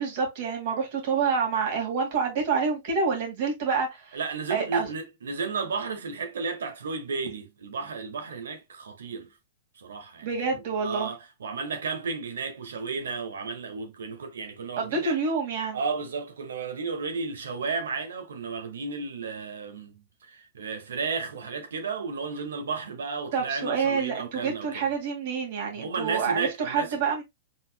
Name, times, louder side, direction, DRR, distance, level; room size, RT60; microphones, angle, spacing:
voice 1, 0.0-4.2 4.5-4.9 10.2-11.1 14.8-15.8 23.3-27.2, right 5 dB, 55° right, 2.1 m, -27 dB
voice 2, 4.1-9.3 9.8-10.3 10.8-15.2 15.7-24.9 25.8-27.0, right 4 dB, 90° right, 1.2 m, -33 dB
4.1 x 4.0 x 2.3 m
hypercardioid pair, 130°, 0 cm